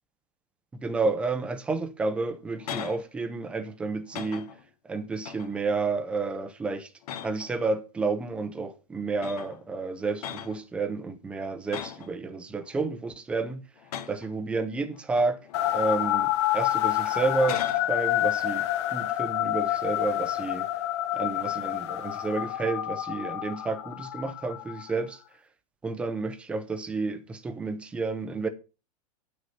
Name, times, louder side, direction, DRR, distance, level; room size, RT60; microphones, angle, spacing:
voice 1, 0.7-4.5 4.8-6.9 7.2-13.6 14.1-15.4 15.7-20.7 21.1-25.2 25.8-28.5, right 3 dB, 5° right, 0.5 m, -30 dB
sound 1, 2.2-3.1 3.5-3.7 4.1-4.7 5.2-5.7 6.1-6.4 7.0-7.6 8.6-8.7 9.2-9.6 10.2-10.6 11.7-12.1 12.6-13.2 13.8-14.3 14.9-15.8 16.2-16.4 17.2-17.9 21.4-21.7, left 9 dB, 75° left, 1.4 m, -40 dB
sound 2, 15.5-25.0, left 14 dB, 45° left, 0.9 m, -28 dB
9.0 x 6.2 x 5.6 m
supercardioid pair, 175°, 20 cm